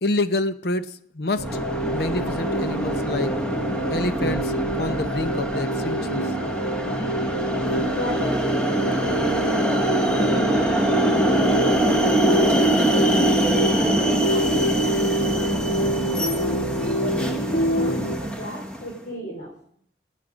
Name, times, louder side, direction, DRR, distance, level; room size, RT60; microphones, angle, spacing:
voice 1, 0.0-1.5 1.9-3.3 3.9-4.5 4.8-6.2, left 2 dB, 65° left, 11 dB, 0.8 m, -27 dB
sound 1, 1.4-18.2, right 1 dB, 80° left, 3.4 m, -26 dB
sound 2, 1.4-18.9, right 1 dB, 5° left, 1.2 m, -24 dB
voice 2, 7.8-16.6 17.0-19.5, equal, 45° left, -2 dB, 4.5 m, -35 dB
23.5 x 9.3 x 5.1 m, 0.66 s
head